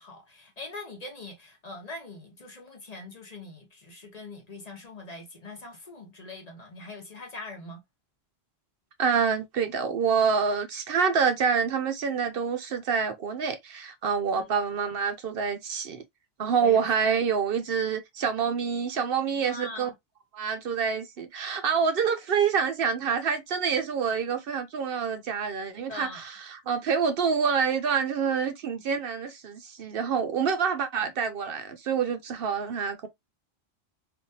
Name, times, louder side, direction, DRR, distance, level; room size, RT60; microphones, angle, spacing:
voice 1, 0.0-7.8 14.3-14.5 16.6-16.9 19.3-19.9 25.7-26.2, left 2 dB, 40° left, 0.8 m, -42 dB
voice 2, 9.0-16.0 16.4-19.9 20.3-33.1, right 6 dB, 65° right, 0.7 m, -27 dB
3.5 x 2.4 x 2.6 m
omnidirectional pair, 1.1 m